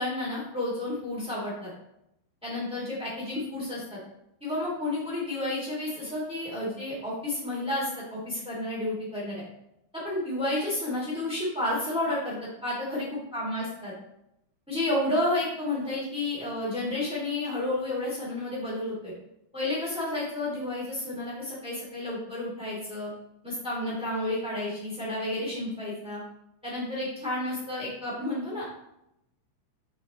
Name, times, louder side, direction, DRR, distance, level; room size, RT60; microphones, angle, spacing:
voice 1, 0.0-1.7 2.4-4.0 4.4-9.4 9.9-13.9 14.7-19.1 19.5-23.1 23.4-26.2 26.6-28.8, left 1 dB, 5° right, -6 dB, 0.4 m, -31 dB
7.4 x 6.2 x 3.1 m, 0.81 s
omnidirectional pair, 5.5 m